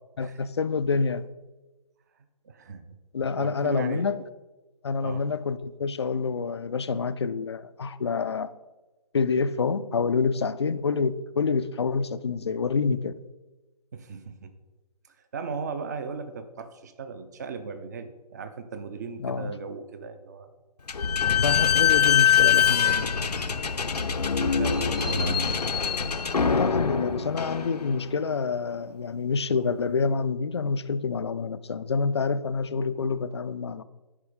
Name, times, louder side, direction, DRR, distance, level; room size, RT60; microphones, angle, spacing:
voice 1, 0.2-1.3 3.1-4.2 4.8-8.5 9.1-13.1 19.2-19.6 21.4-23.2 26.5-33.8, left 5 dB, 45° left, 0.4 m, -27 dB
voice 2, 2.4-3.0 3.4-4.1 5.0-5.2 13.9-14.5 15.1-20.5 24.4-25.5, right 5 dB, 25° right, 0.6 m, -37 dB
Slam / Squeak, 20.9-28.2, left 7 dB, 75° left, 0.7 m, -23 dB
11.0 x 4.4 x 5.0 m
figure-of-eight pair, 145°, 20 cm